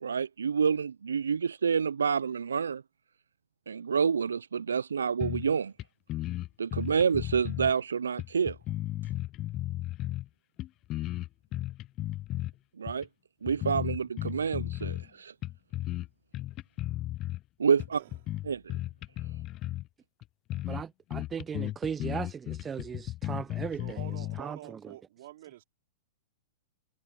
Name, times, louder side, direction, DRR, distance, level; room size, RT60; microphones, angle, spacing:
voice 1, 0.0-2.8 3.7-5.7 6.6-8.6 12.8-13.1 13.4-15.3 17.6-18.0 18.5-18.7, right 6 dB, 80° right, 0.5 m, -28 dB
sound 1, 5.2-5.5 5.8-5.9 6.1-7.7 8.2-10.3 10.6-12.5 12.9-13.1 13.5-15.1 15.4-16.1 16.3-17.4 17.8-19.9 20.2-20.3 20.5-20.8 21.1-24.4, left 15 dB, 35° left, 0.6 m, -35 dB
voice 2, 20.7-24.0 24.4-24.6, right 7 dB, 20° right, 0.7 m, -37 dB
voice 3, 23.8-25.6, right 14 dB, 60° right, 4.6 m, -47 dB
hypercardioid pair, 105°, 0 cm